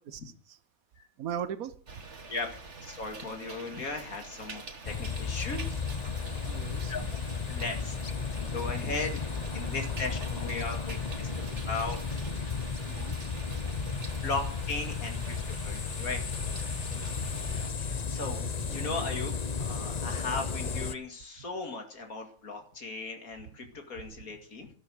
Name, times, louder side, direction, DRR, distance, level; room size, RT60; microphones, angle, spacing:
voice 1, 0.1-0.6 1.2-1.8 6.2-7.1 12.9-13.1 16.7-17.0 18.1-18.2, right 9 dB, 85° right, 13 dB, 1.4 m, -39 dB
sound 1, 1.9-17.7, right 3 dB, 55° right, 2.0 m, -45 dB
voice 2, 2.8-5.8 6.9-7.0 7.5-8.0 8.4-11.3 11.7-12.0 14.2-15.2 15.6-16.2 17.8-24.7, left 3 dB, 85° left, 4 dB, 2.7 m, -37 dB
sound 2, 4.8-20.9, left 5 dB, 35° left, 0.8 m, -34 dB
13.0 x 12.5 x 6.4 m, 0.44 s
omnidirectional pair, 1.5 m